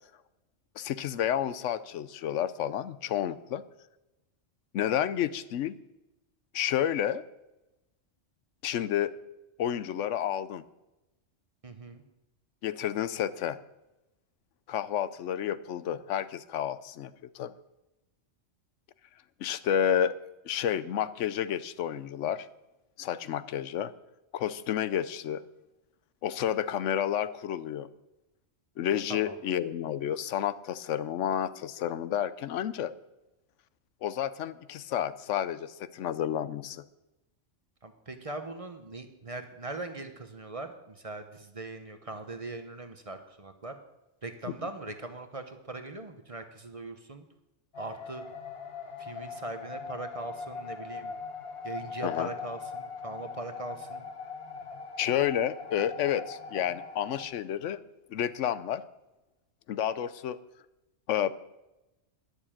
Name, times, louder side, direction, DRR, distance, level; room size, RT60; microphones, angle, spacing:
voice 1, 0.8-3.6 4.7-5.7 6.5-7.2 8.6-9.1 9.6-10.6 12.6-13.6 14.7-17.5 19.4-20.2 20.4-22.5 23.0-23.9 24.3-25.4 26.2-27.9 28.8-32.9 34.0-36.8 44.5-44.6 52.0-52.3 55.0-57.8 58.1-58.8 59.7-60.4 61.1-61.4, left 10 dB, 85° left, 15 dB, 1.0 m, -30 dB
voice 2, 11.6-12.0 29.1-29.4 37.8-43.7 44.2-47.2 47.8-48.2 49.0-51.1 51.6-54.1, right 3 dB, 30° right, 8 dB, 0.9 m, -40 dB
sound 1, 47.7-57.3, left 5 dB, 55° left, 1.2 m, -41 dB
11.0 x 6.6 x 8.7 m, 0.97 s
omnidirectional pair, 1.2 m